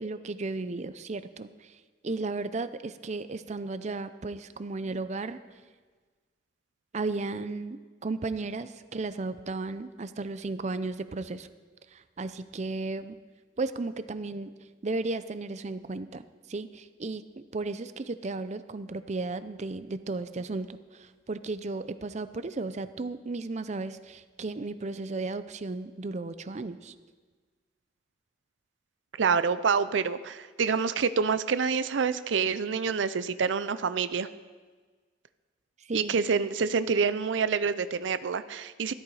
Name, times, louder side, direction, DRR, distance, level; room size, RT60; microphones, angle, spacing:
voice 1, 0.0-1.7 2.0-5.4 6.9-11.5 11.9-13.2 13.6-14.5 14.8-26.9 35.9-36.2, right 3 dB, 40° right, 12 dB, 0.5 m, -34 dB
voice 2, 29.2-34.3 35.9-38.9, right 5 dB, 90° right, 14 dB, 0.5 m, -27 dB
14.0 x 12.5 x 4.8 m, 1.4 s
head